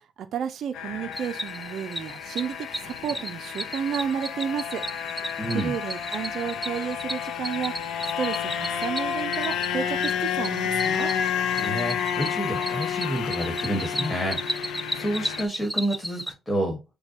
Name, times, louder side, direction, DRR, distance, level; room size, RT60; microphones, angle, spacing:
voice 1, 0.0-4.8 5.5-7.7 8.2-11.1, right 8 dB, 70° right, 0.4 m, -31 dB
sound 1, 0.7-15.5, left 8 dB, 85° left, 0.5 m, -30 dB
Cricket, 1.1-16.3, equal, ahead, 0.3 m, -36 dB
voice 2, 5.4-5.7 11.5-14.4 14.9-16.8, right 1 dB, 20° left, 1.5 m, -29 dB
6.0 x 2.2 x 2.8 m
cardioid pair, 90°, 0 cm